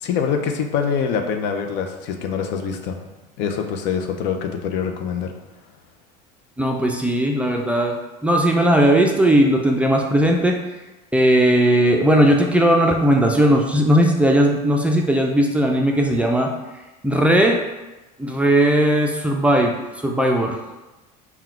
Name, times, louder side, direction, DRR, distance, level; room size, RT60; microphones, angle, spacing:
voice 1, 0.0-3.0 3.4-5.3, left 6 dB, 60° left, 4 dB, 0.6 m, -24 dB
voice 2, 6.6-10.6 11.1-16.5 17.0-17.6 18.2-20.6, right 1 dB, 5° right, 1 dB, 0.4 m, -17 dB
3.8 x 2.3 x 4.3 m, 1.1 s
supercardioid pair, 95°, 20 cm